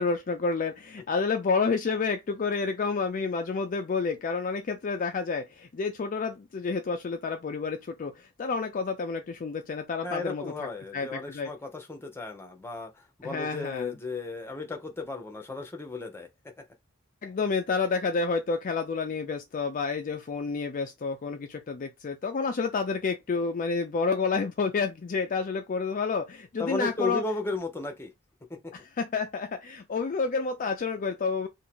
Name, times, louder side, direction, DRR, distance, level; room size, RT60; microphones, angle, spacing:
voice 1, 0.0-10.4 10.9-11.5 13.2-13.9 17.2-27.2 28.7-31.5, left 4 dB, 35° left, 0.4 m, -29 dB
voice 2, 10.0-16.3 26.6-28.1 28.5-28.6, left 3 dB, 10° left, 0.8 m, -34 dB
2.7 x 2.7 x 4.3 m
head